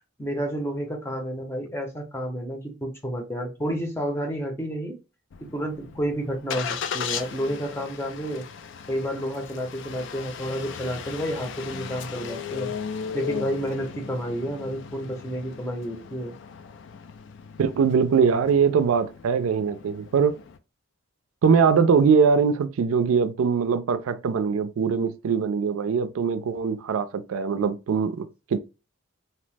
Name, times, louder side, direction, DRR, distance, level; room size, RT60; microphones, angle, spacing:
voice 1, 0.2-5.0 5.5-8.4 8.9-12.7 13.1-16.3, equal, 10° left, 0.6 m, -30 dB
Engine starting, 5.3-20.6, left 7 dB, 60° left, 0.3 m, -37 dB
voice 2, 17.6-20.4 21.4-28.6, right 6 dB, 80° right, 0.4 m, -22 dB
2.8 x 2.0 x 3.2 m
head